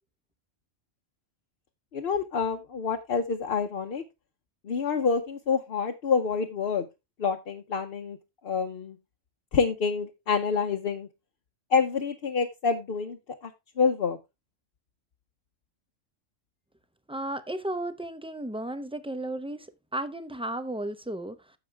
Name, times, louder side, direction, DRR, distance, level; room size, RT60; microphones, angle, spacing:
voice 1, 1.9-4.0 4.6-6.9 7.2-8.2 8.4-9.0 9.5-11.1 11.7-13.2 13.4-13.5 13.8-14.2, left 5 dB, 55° left, 0.9 m, -27 dB
voice 2, 17.1-21.6, right 1 dB, 5° right, 0.5 m, -34 dB
9.9 x 7.1 x 3.4 m
omnidirectional pair, 1.3 m